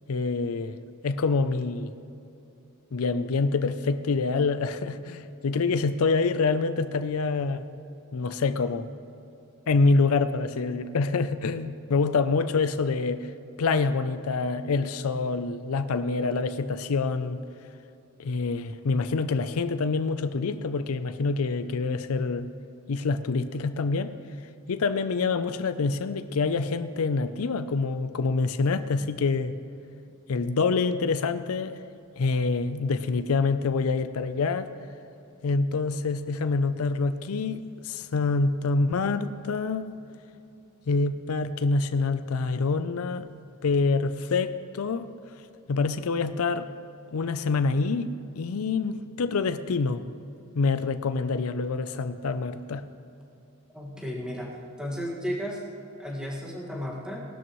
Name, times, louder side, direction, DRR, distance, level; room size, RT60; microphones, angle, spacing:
voice 1, 0.1-1.9 2.9-7.6 8.1-8.9 9.7-13.3 13.6-17.4 18.2-22.5 22.9-24.1 24.7-29.6 30.3-31.8 32.2-34.7 35.4-39.9 40.9-43.3 43.6-45.1 45.7-46.7 47.1-50.0 50.6-52.8, left 4 dB, 80° left, 11 dB, 0.5 m, -26 dB
voice 2, 53.7-54.5 54.8-55.6 56.0-57.2, equal, 5° right, -3 dB, 1.8 m, -33 dB
19.0 x 12.0 x 3.1 m, 2.8 s
head